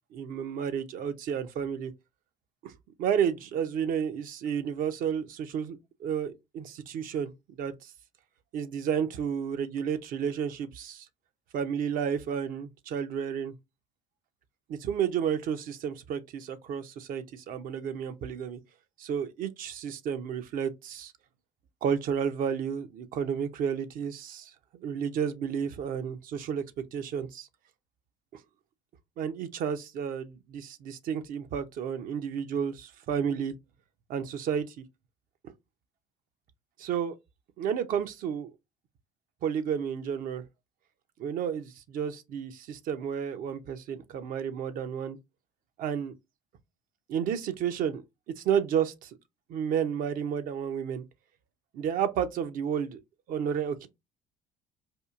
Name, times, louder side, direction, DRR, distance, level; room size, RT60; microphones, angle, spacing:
voice 1, 0.1-1.9 2.6-2.7 3.0-7.9 8.5-11.1 11.5-13.5 14.7-18.6 19.0-21.1 21.8-24.5 24.8-26.6 26.9-27.5 29.2-33.5 34.1-34.8 36.8-37.1 37.6-38.5 39.4-40.4 41.2-45.2 45.8-46.1 47.1-48.0 48.4-49.2 49.5-51.0 51.7-53.0 53.3-53.9, right 8 dB, 55° right, 0.6 m, -31 dB
4.4 x 2.4 x 2.4 m
hypercardioid pair, 60°, 17 cm